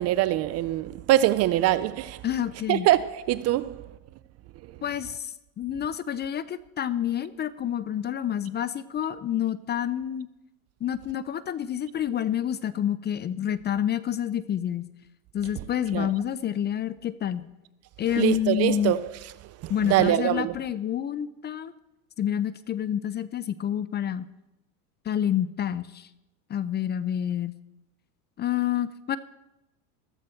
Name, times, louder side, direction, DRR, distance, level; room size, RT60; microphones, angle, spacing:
voice 1, 0.0-2.2 2.7-3.9 15.9-16.1 18.2-19.1 19.6-20.5, right 14 dB, 35° right, 0.4 m, -23 dB
voice 2, 2.2-2.9 4.8-10.3 10.8-14.9 15.3-17.5 18.0-19.0 19.7-21.7 22.2-24.2 25.1-26.1 26.5-27.5 28.4-29.2, left 10 dB, 25° left, 0.5 m, -28 dB
14.0 x 14.0 x 4.4 m
supercardioid pair, 115°, 46 cm